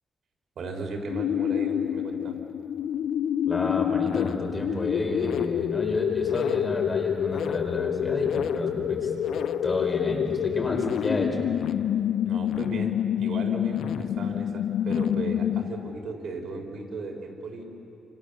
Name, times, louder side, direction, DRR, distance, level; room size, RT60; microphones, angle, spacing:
voice 1, 0.6-2.4 12.2-17.6, right 3 dB, 65° right, 2 dB, 4.3 m, -36 dB
sound 1, 1.1-16.0, left 9 dB, 85° left, 0.6 m, -27 dB
voice 2, 3.5-9.1 9.6-11.5, left 2 dB, 25° left, 1 dB, 4.7 m, -31 dB
29.5 x 27.0 x 6.8 m, 2.8 s
cardioid pair, 120°, 0 cm